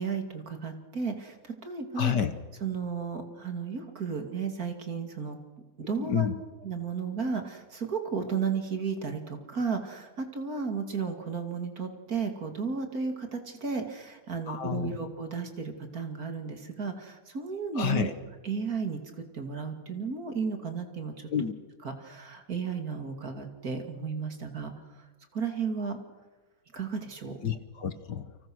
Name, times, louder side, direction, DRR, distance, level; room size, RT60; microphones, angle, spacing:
voice 1, 0.0-2.1 2.6-5.4 5.8-6.3 6.6-18.1 18.4-21.3 21.8-24.7 25.3-26.0 26.7-27.4, right 5 dB, 45° right, 6 dB, 2.9 m, -33 dB
voice 2, 2.0-2.3 6.0-6.4 14.5-15.0 17.7-18.1 21.3-21.5 27.4-28.5, left 8 dB, 60° left, 11 dB, 1.7 m, -29 dB
29.5 x 26.0 x 6.2 m, 1.3 s
omnidirectional pair, 2.3 m